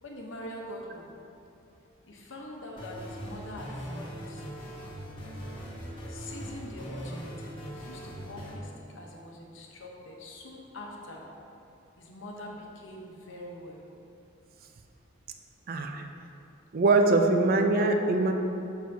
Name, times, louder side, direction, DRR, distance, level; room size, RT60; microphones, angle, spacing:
voice 1, 0.0-1.1 2.0-4.5 6.1-7.3 7.6-11.3 12.0-13.9, left 1 dB, 65° left, 0 dB, 0.9 m, -44 dB
sound 1, 2.8-8.6, equal, 25° left, 1.3 m, -40 dB
voice 2, 15.7-16.0 16.7-18.3, right 2 dB, 45° right, 4 dB, 0.4 m, -23 dB
6.5 x 6.1 x 2.7 m, 2.7 s
head